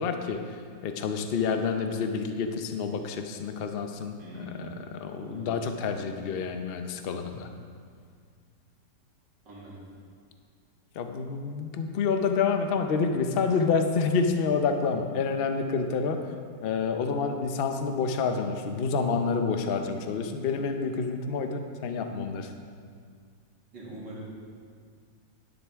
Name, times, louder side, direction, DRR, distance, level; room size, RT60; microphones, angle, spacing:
voice 1, 0.0-7.5 10.9-16.3 16.6-22.5, left 5 dB, 70° left, 6 dB, 0.5 m, -28 dB
voice 2, 4.2-4.7 5.2-5.5 9.4-9.9 23.7-24.3, right 1 dB, 75° right, -6 dB, 3.0 m, -43 dB
11.5 x 9.9 x 3.5 m, 2.1 s
omnidirectional pair, 1.9 m